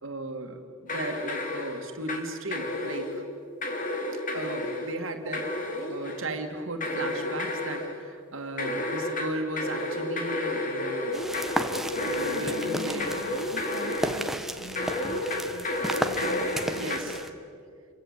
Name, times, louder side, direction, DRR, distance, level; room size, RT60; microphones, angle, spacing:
voice 1, 0.0-3.2 4.3-11.3 12.1-13.1 16.6-17.2, right 2 dB, 70° right, 4 dB, 2.4 m, -36 dB
sound 1, 0.9-2.3 2.5-3.2 3.6-5.0 5.3-6.4 6.8-8.0 8.6-14.3 14.8-17.0, left 1 dB, 40° left, 3.4 m, -31 dB
sound 2, 11.1-17.3, equal, ahead, 1.3 m, -34 dB
voice 2, 11.9-15.7 16.0-17.2, left 1 dB, 75° left, 9 dB, 1.6 m, -42 dB
29.5 x 24.0 x 8.3 m, 2.3 s
head